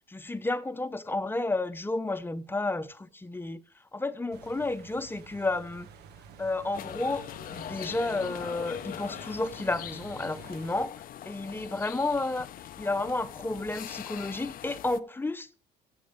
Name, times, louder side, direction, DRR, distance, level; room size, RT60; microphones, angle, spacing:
voice 1, 0.1-3.6 3.9-5.9 6.4-7.2 7.5-12.5 12.8-15.5, left 2 dB, 10° left, 0.9 m, -31 dB
sound 1, 4.3-10.8, right 7 dB, 75° right, 1.5 m, -50 dB
sound 2, 6.7-15.0, left 11 dB, 55° left, 0.7 m, -42 dB
15.5 x 7.4 x 5.2 m
cardioid pair, 110°, 17 cm